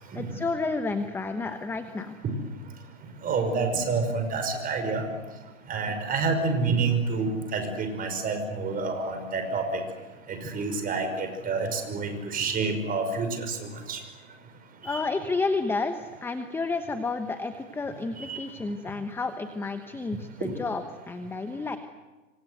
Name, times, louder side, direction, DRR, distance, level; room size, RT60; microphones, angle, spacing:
voice 1, 0.0-2.2 14.8-21.8, left 3 dB, 5° left, 8 dB, 1.1 m, -31 dB
voice 2, 3.2-5.0 5.7-9.8 10.3-13.6 13.9-14.0 14.8-15.0 18.2-18.4, right 4 dB, 20° right, 7 dB, 5.5 m, -28 dB
26.5 x 25.0 x 8.1 m, 1.2 s
hypercardioid pair, 135°, 41 cm